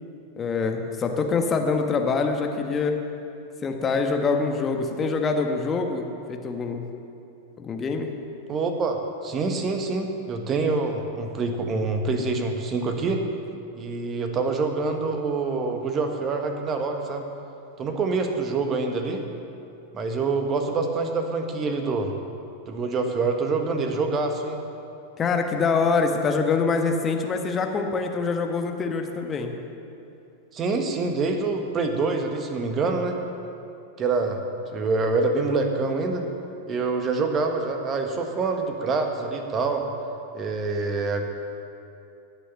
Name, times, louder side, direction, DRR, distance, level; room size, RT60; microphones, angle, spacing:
voice 1, 0.4-3.0 3.6-6.8 7.6-8.1 25.2-29.6, left 4 dB, 20° left, 4 dB, 1.4 m, -25 dB
voice 2, 8.5-13.2 13.7-17.2 17.8-19.2 19.9-22.1 22.7-24.6 30.5-33.2 34.0-34.4 34.7-36.2 36.7-39.9 40.3-41.2, right 3 dB, 25° right, 5 dB, 1.5 m, -26 dB
18.5 x 6.9 x 6.9 m, 2.7 s
figure-of-eight pair, 90°, 0 cm